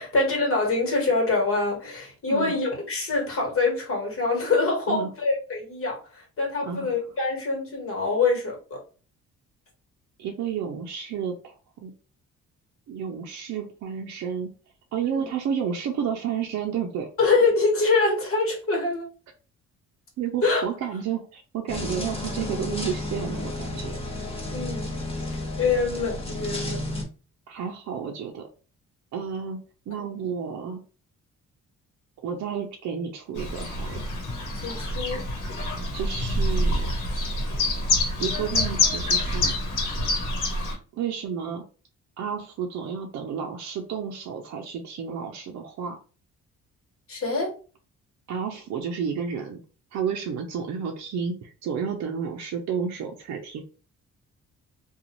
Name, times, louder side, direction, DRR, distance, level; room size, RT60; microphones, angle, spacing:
voice 1, 0.0-8.8 15.0-15.3 17.2-19.1 20.4-20.6 24.5-24.9 25.2-26.8 30.0-30.1 34.6-35.2 47.1-47.5, left 3 dB, 45° left, 1.4 m, -25 dB
voice 2, 10.2-11.9 12.9-14.5 14.9-17.1 20.2-24.0 27.5-28.5 29.1-29.6 29.9-30.8 32.2-34.1 35.9-36.9 38.2-39.6 40.9-41.6 42.2-46.0 48.3-49.6 49.9-53.6, right 7 dB, 65° right, 0.5 m, -31 dB
sound 1, 21.7-27.0, left 1 dB, 20° left, 0.9 m, -32 dB
Chirp tweet, 33.4-40.7, left 2 dB, 75° left, 1.1 m, -26 dB
2.5 x 2.3 x 2.9 m
cardioid pair, 90°, 30 cm